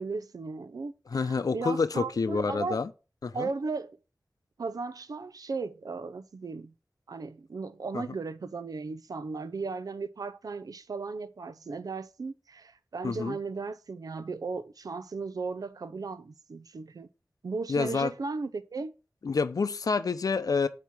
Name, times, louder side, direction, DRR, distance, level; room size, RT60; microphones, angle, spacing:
voice 1, 0.0-2.8 3.3-4.0 4.6-6.7 7.1-17.1 17.4-18.9, right 4 dB, 75° right, 0.6 m, -36 dB
voice 2, 1.1-2.9 3.2-3.5 7.9-8.0 13.0-13.4 17.7-18.1 19.2-20.7, left 4 dB, 75° left, 0.6 m, -28 dB
8.2 x 3.0 x 5.9 m
wide cardioid pair, 50°, 6 cm